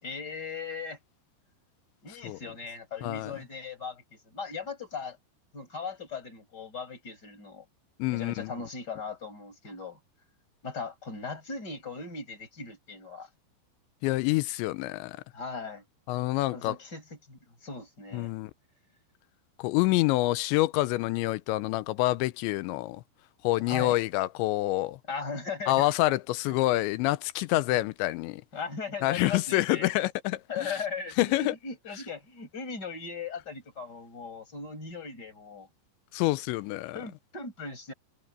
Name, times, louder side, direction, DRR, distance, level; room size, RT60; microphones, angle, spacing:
voice 1, 0.0-1.0 2.0-5.2 5.5-7.7 8.1-10.0 10.6-13.3 15.3-15.8 16.5-18.3 23.6-24.0 25.1-25.9 28.5-29.9 30.5-35.7 36.9-37.9, left 4 dB, 20° left, 6.0 m, -38 dB
voice 2, 3.0-3.3 8.0-8.5 14.0-15.2 16.1-16.8 18.1-18.5 19.6-23.0 23.4-25.0 25.7-28.4 29.0-30.7 31.2-31.6 36.1-37.0, left 18 dB, 80° left, 2.8 m, -27 dB
omnidirectional pair, 5.4 m